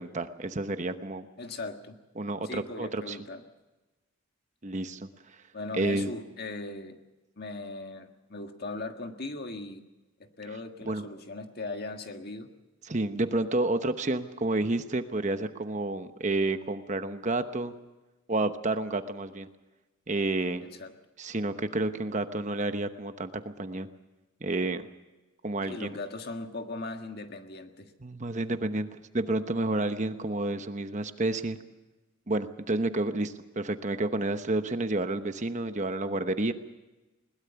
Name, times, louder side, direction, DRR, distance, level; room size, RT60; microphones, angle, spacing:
voice 1, 0.0-1.3 2.2-3.2 4.6-5.1 5.8-6.1 10.9-11.1 12.8-17.7 18.3-19.5 20.1-20.6 21.2-23.9 24.4-24.9 25.4-26.0 28.0-28.9 29.1-31.6 32.3-36.5, right 2 dB, 35° right, 9 dB, 1.0 m, -30 dB
voice 2, 1.4-2.0 2.4-3.4 5.5-7.0 7.4-9.8 10.2-12.5 20.6-20.9 25.7-27.9, left 2 dB, 45° left, 6 dB, 1.7 m, -39 dB
21.5 x 20.0 x 7.0 m, 1.1 s
head